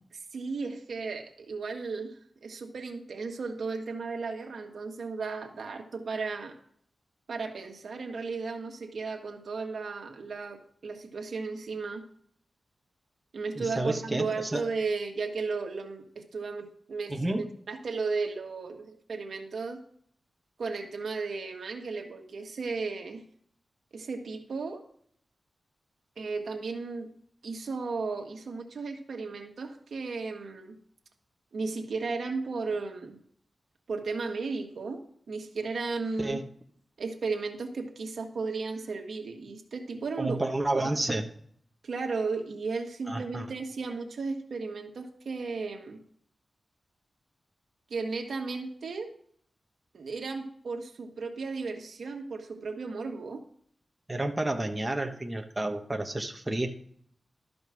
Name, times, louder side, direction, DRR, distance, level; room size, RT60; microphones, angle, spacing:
voice 1, 0.1-6.5 7.3-12.0 13.3-19.8 20.6-23.2 23.9-24.8 26.2-27.1 27.4-30.8 31.5-33.2 33.9-36.4 37.0-40.4 40.7-40.9 41.8-46.0 47.9-49.1 49.9-53.4, right 4 dB, 75° right, 3 dB, 1.5 m, -35 dB
voice 2, 13.5-14.6 17.1-17.5 36.2-36.4 40.2-41.2 43.1-43.4 54.1-56.7, right 2 dB, 15° right, 3 dB, 1.1 m, -30 dB
12.5 x 5.2 x 6.3 m, 0.63 s
wide cardioid pair, 105°, 0 cm